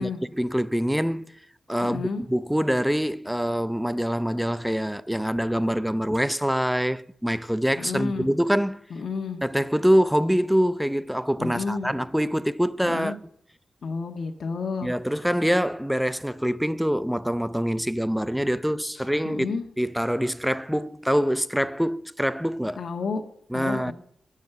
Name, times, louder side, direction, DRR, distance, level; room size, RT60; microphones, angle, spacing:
voice 1, 0.0-1.4 1.7-8.8 9.4-13.2 14.8-22.8 23.5-23.9, equal, 5° right, 0.6 m, -25 dB
voice 2, 1.8-2.2 7.8-8.3 8.9-9.4 11.4-11.9 12.8-13.2 13.8-14.9 19.2-19.6 22.8-23.2 23.5-23.9, left 4 dB, 65° left, 1.5 m, -30 dB
19.5 x 7.4 x 5.9 m
wide cardioid pair, 100°, 0 cm